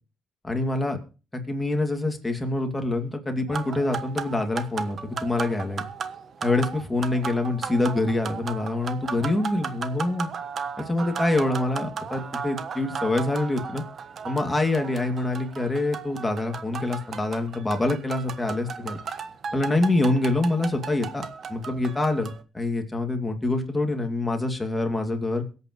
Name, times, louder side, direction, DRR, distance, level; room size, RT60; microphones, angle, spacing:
voice 1, 0.4-1.0 1.3-5.8 6.4-10.3 10.8-13.8 14.2-19.0 19.5-25.4, left 2 dB, 15° left, 3 dB, 2.6 m, -26 dB
sound 1, 3.5-22.4, right 6 dB, 55° right, 1.2 m, -36 dB
23.0 x 8.5 x 3.2 m, 0.36 s
cardioid pair, 90°, 0 cm